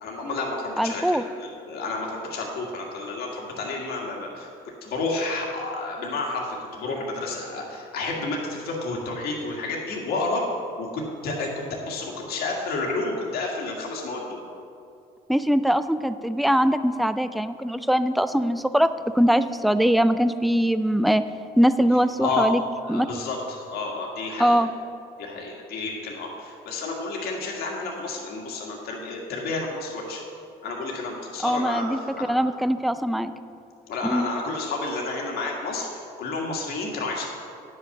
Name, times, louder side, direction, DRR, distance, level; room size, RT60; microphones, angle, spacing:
voice 1, 0.0-4.5 4.8-10.4 10.8-11.5 11.8-14.4 22.2-22.5 22.9-24.6 25.2-30.2 30.6-32.3 33.9-37.2, left 3 dB, 70° left, -1 dB, 1.7 m, -30 dB
voice 2, 0.8-1.2 15.3-21.2 21.6-22.6 22.9-23.1 24.4-24.7 31.4-32.0 32.3-33.3 34.0-34.3, equal, ahead, 12 dB, 0.3 m, -22 dB
9.7 x 5.6 x 6.9 m, 2.5 s
cardioid pair, 110°, 17 cm